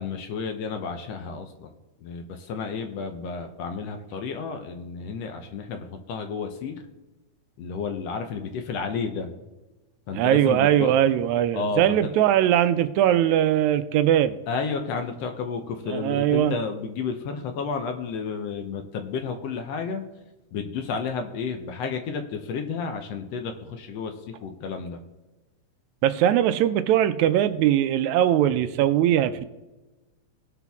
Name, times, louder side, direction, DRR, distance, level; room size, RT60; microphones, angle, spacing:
voice 1, 0.0-1.7 2.0-6.8 7.6-9.3 10.1-11.0 11.5-12.1 14.5-20.0 20.5-25.0, left 5 dB, 70° left, 6 dB, 1.8 m, -31 dB
voice 2, 10.1-14.3 15.9-16.6 26.0-29.4, right 11 dB, 80° right, 12 dB, 1.9 m, -21 dB
18.0 x 6.0 x 3.5 m, 1.1 s
omnidirectional pair, 3.4 m